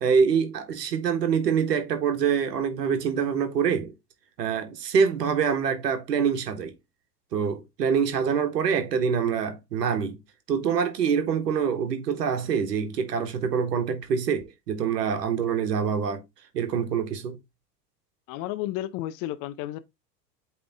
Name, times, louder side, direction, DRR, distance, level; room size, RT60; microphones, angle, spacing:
voice 1, 0.0-3.9 4.4-6.7 7.3-10.2 10.5-16.2 16.5-17.4, right 6 dB, 75° right, 1.5 m, -25 dB
voice 2, 18.3-19.8, left 14 dB, 40° left, 0.7 m, -32 dB
8.7 x 3.6 x 3.4 m
figure-of-eight pair, 80°, 49 cm